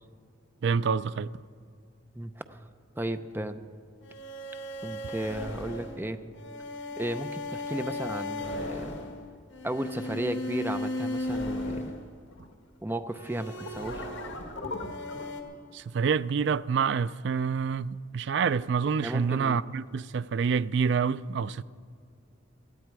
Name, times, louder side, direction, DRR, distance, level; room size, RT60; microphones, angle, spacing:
voice 1, 0.6-1.3 15.7-21.6, right 6 dB, 60° right, 0.4 m, -27 dB
voice 2, 2.2-2.6 3.0-3.6 4.8-6.2 7.0-9.0 9.6-11.9 12.8-14.2 19.0-19.6, right 1 dB, 10° right, 0.6 m, -34 dB
sound 1, 4.0-12.5 13.1-15.4, left 1 dB, 65° left, 1.7 m, -36 dB
17.5 x 13.5 x 4.7 m
head